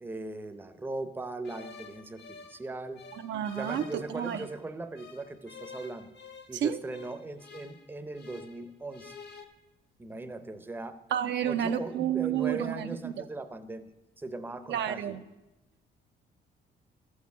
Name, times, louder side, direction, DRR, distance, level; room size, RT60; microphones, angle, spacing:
voice 1, 0.0-3.0 3.5-6.1 6.5-9.1 10.0-11.0 11.4-13.9 14.2-15.2, right 2 dB, 10° right, 9 dB, 0.6 m, -39 dB
sound 1, 1.4-4.6 5.0-8.6 8.9-9.4, left 5 dB, 60° left, 1.0 m, -49 dB
voice 2, 3.2-4.5 6.5-6.8 11.1-13.2 14.7-15.2, right 9 dB, 70° right, 8 dB, 0.6 m, -30 dB
12.5 x 6.4 x 7.1 m, 1.0 s
cardioid pair, 105°, 20 cm